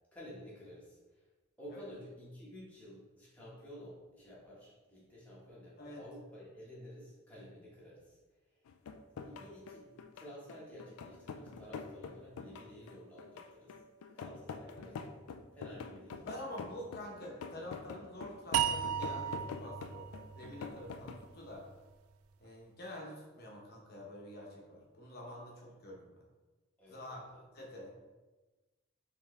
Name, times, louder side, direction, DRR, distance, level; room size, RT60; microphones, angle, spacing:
voice 1, 0.1-1.3 1.6-8.6 9.1-13.7 14.1-15.3 15.5-16.2 26.8-27.4, equal, 5° left, -7 dB, 1.2 m, -52 dB
sound 1, 8.7-21.3, left 5 dB, 85° left, 0.3 m, -46 dB
voice 2, 16.2-21.7 22.4-26.2 26.9-27.2 27.5-27.9, left 1 dB, 45° left, -1 dB, 1.0 m, -47 dB
sound 2, 18.5-21.7, right 9 dB, 85° right, 0.3 m, -36 dB
4.6 x 3.5 x 3.2 m, 1.2 s
head